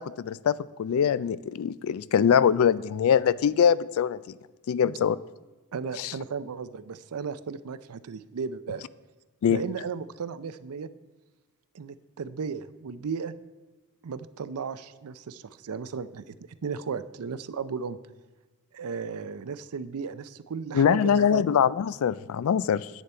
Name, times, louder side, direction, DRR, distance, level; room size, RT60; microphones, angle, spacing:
voice 1, 0.0-4.2 4.7-5.2 6.0-6.1 9.4-9.6 20.7-22.9, left 8 dB, 65° left, 19 dB, 0.3 m, -23 dB
voice 2, 5.7-8.8 9.5-10.9 11.7-13.3 14.0-16.3 16.6-18.0 18.7-21.4, right 5 dB, 75° right, 15 dB, 0.5 m, -35 dB
10.5 x 8.2 x 4.3 m, 1.2 s
head